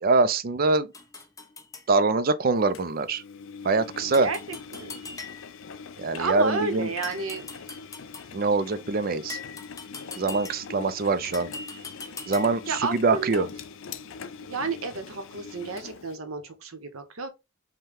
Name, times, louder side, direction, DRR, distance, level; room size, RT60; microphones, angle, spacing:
voice 1, 0.0-0.9 1.9-3.2 3.6-4.3 6.0-6.9 8.3-9.4 10.2-11.5 12.3-13.5, right 3 dB, 45° right, 0.4 m, -24 dB
sound 1, 0.9-1.9 4.1-5.7 7.0-8.4 9.3-10.8 11.3-12.7, left 4 dB, 15° left, 0.6 m, -41 dB
Engine, 2.7-16.2, left 5 dB, 65° left, 0.4 m, -43 dB
voice 2, 4.2-5.0 6.2-7.4 12.2-12.3 12.7-13.5 14.4-17.3, right 4 dB, 80° right, 0.9 m, -31 dB
5.4 x 2.2 x 3.4 m
head